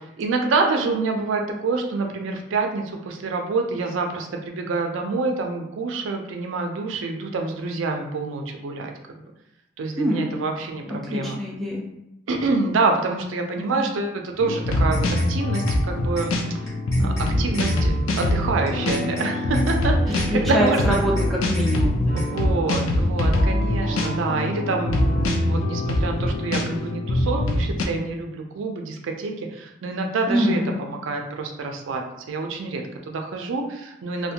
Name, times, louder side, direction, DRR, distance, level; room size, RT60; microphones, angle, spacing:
voice 1, 0.2-8.9 9.8-11.4 12.3-16.3 17.0-21.0 22.2-34.3, right 3 dB, 80° right, 3 dB, 0.4 m, -27 dB
voice 2, 10.0-10.3 10.9-11.8 13.6-13.9 20.3-22.0 30.3-30.7, equal, ahead, -3 dB, 0.3 m, -24 dB
sound 1, 14.4-27.8, left 1 dB, 85° left, 0.4 m, -23 dB
sound 2, 14.7-15.3 15.5-15.8 16.2-16.3 16.7-17.3 17.5-17.8 18.2-18.3 18.7-19.3 19.5-19.8 20.2-20.3 20.7-21.3 21.5-21.8 22.2-22.3, left 1 dB, 15° left, 0.7 m, -38 dB
sound 3, 16.3-26.8, equal, 55° left, 1.1 m, -35 dB
2.5 x 2.1 x 2.7 m, 0.87 s
head